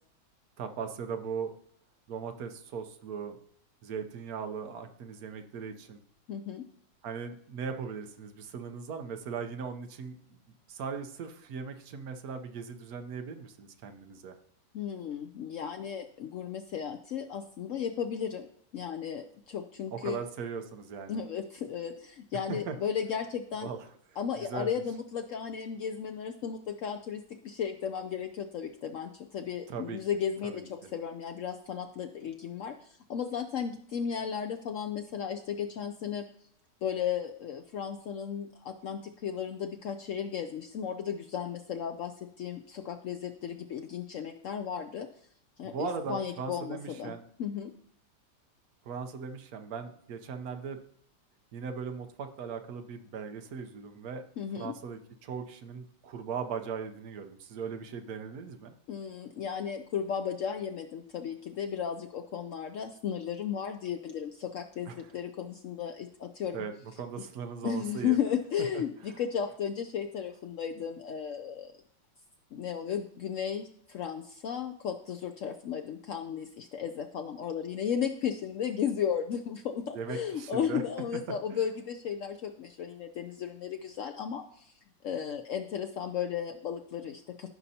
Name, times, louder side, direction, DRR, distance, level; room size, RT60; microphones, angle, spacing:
voice 1, 0.6-1.5 2.1-3.4 3.8-6.0 7.0-10.4 10.7-14.3 19.9-21.2 22.5-22.8 23.6-23.8 24.4-24.8 29.7-30.0 30.4-30.7 45.6-47.2 48.8-50.8 51.5-54.2 54.6-58.7 64.9-65.0 66.5-66.7 67.0-68.2 79.9-80.8, right 6 dB, 60° right, 7 dB, 1.2 m, -38 dB
voice 2, 6.3-6.6 14.7-18.5 18.7-20.2 21.1-23.7 24.2-36.2 36.8-45.1 45.6-47.1 47.4-47.7 54.4-54.7 58.9-66.6 67.2-67.3 67.6-71.7 72.5-84.7 85.0-87.5, left 8 dB, 80° left, 5 dB, 0.7 m, -35 dB
15.5 x 5.4 x 2.8 m, 0.67 s
omnidirectional pair, 1.9 m